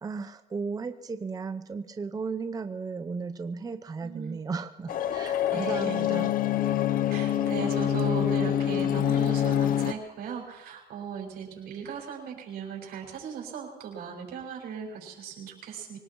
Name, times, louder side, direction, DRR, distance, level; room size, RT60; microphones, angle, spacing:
voice 1, 0.0-6.3, right 4 dB, 20° right, 9 dB, 0.7 m, -35 dB
voice 2, 4.0-4.4 5.5-6.0 7.1-16.0, right 7 dB, 75° right, -1 dB, 5.7 m, -37 dB
sound 1, 4.9-9.9, left 11 dB, 55° left, 0.7 m, -26 dB
25.0 x 19.0 x 3.1 m, 1.1 s
cardioid pair, 110°, 17 cm